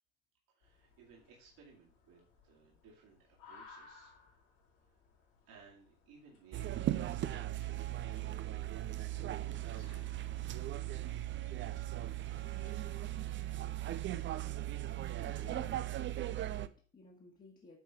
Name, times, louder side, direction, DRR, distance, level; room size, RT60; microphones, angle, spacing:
voice 1, 0.5-4.2 4.8-4.9 5.4-8.7 9.3-13.9, right 6 dB, 60° right, -3 dB, 2.4 m, -61 dB
sound 1, 0.6-13.9, left 4 dB, 70° left, 3.9 m, -63 dB
sound 2, 6.5-16.7, right 14 dB, 30° right, 0.5 m, -38 dB
sound 3, 9.3-10.9, left 5 dB, 50° left, 2.4 m, -65 dB
voice 2, 15.2-15.8 16.3-17.8, left 3 dB, 20° left, -2 dB, 1.6 m, -56 dB
9.2 x 3.9 x 4.7 m, 0.42 s
hypercardioid pair, 75°, 41 cm